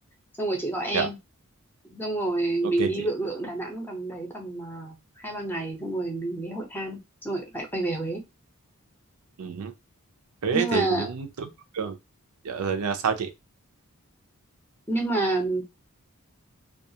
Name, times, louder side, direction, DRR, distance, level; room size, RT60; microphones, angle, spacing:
voice 1, 0.4-1.2 1.8-5.0 5.2-8.2 10.5-11.1 14.9-15.6, right 2 dB, 10° left, 0.7 m, -29 dB
voice 2, 2.6-3.1 9.4-9.7 10.4-12.0 12.4-13.3, right 6 dB, 80° right, 0.5 m, -28 dB
2.4 x 2.3 x 2.7 m
head